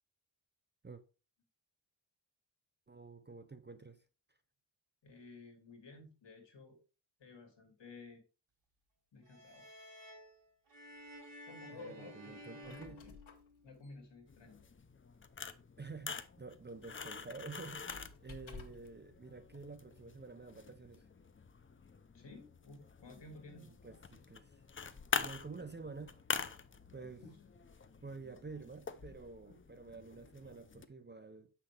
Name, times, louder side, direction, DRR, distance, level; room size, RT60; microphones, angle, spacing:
voice 1, 2.9-4.0 11.7-13.0 15.8-21.1 23.6-24.6 25.1-26.2 26.9-27.2 28.0-31.5, right 4 dB, 25° right, 0.5 m, -49 dB
voice 2, 5.0-6.8 7.2-8.2 9.1-9.8 11.5-13.1 13.6-14.6 22.1-23.7 27.2-27.4, left 3 dB, 65° left, 2.3 m, -54 dB
sound 1, 9.2-13.9, equal, 65° right, 2.9 m, -54 dB
Squeak, 12.4-19.0, left 4 dB, 85° left, 1.4 m, -57 dB
sound 2, 14.3-30.9, left 5 dB, 25° left, 0.5 m, -45 dB
7.4 x 5.9 x 3.3 m
wide cardioid pair, 125°, 46 cm